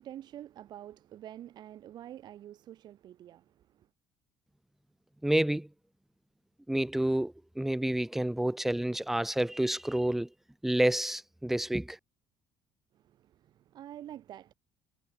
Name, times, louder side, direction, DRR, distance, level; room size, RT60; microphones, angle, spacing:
voice 1, 0.0-3.9 12.9-14.5, right 12 dB, 55° right, 3.0 m, -47 dB
voice 2, 5.2-5.7 6.7-10.3 10.6-12.0, right 1 dB, 5° right, 0.5 m, -29 dB
cardioid pair, 120°, 9 cm